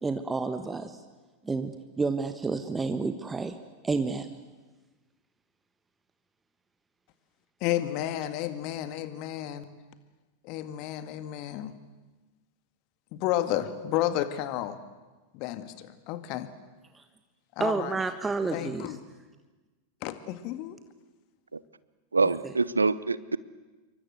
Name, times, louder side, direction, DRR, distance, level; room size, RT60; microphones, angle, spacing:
voice 1, 0.0-1.0 1.4-3.6 3.8-4.3 16.9-17.0 17.6-18.9 22.2-22.3, right 4 dB, 10° right, 9 dB, 1.4 m, -30 dB
voice 2, 7.6-9.7 10.4-11.7 13.1-14.8 15.3-16.5 17.6-18.0 18.5-19.0 20.0-20.8, left 13 dB, 45° left, 11 dB, 2.0 m, -31 dB
voice 3, 22.1-23.4, right 3 dB, 80° right, 19 dB, 0.8 m, -25 dB
28.0 x 23.5 x 8.0 m, 1.3 s
figure-of-eight pair, 90°, 0 cm